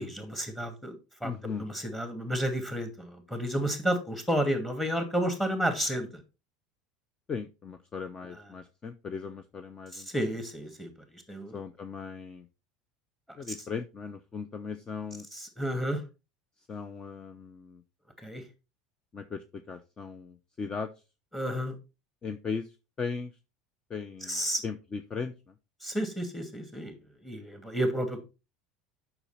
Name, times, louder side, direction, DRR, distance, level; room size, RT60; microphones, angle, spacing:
voice 1, 0.0-1.3 1.6-6.2 9.9-11.6 15.3-16.0 18.2-18.4 21.3-21.7 24.2-24.6 25.8-26.9 27.2-28.2, equal, 10° left, 6 dB, 2.4 m, -31 dB
voice 2, 1.2-1.6 7.3-10.1 11.5-12.5 13.4-15.3 16.6-17.8 19.1-20.9 22.2-23.3 23.9-25.5, left 5 dB, 30° left, 10 dB, 0.7 m, -38 dB
6.9 x 6.0 x 4.2 m, 0.28 s
hypercardioid pair, 90°, 3 cm